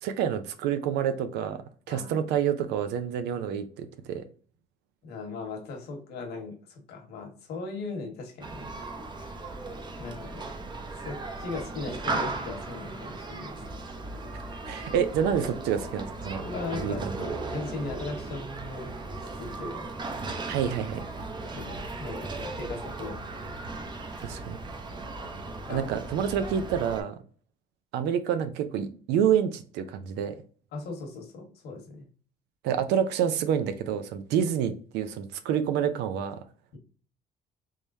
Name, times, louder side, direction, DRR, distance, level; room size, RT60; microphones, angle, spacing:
voice 1, 0.0-1.6 1.9-4.2 14.7-16.4 16.7-17.1 20.4-21.0 24.2-24.6 25.7-27.1 27.9-30.4 32.6-36.4, right 8 dB, 90° right, 9 dB, 0.6 m, -28 dB
voice 2, 1.9-2.3 5.0-8.7 10.0-10.5 11.0-13.6 16.4-18.9 19.4-19.9 21.5-22.3 22.6-23.2 25.7-25.9 30.7-32.1, left 3 dB, 70° left, 2 dB, 1.3 m, -38 dB
Human group actions, 8.4-27.0, right 2 dB, 25° right, 0.7 m, -37 dB
3.7 x 3.2 x 2.6 m, 0.42 s
cardioid pair, 110°, 17 cm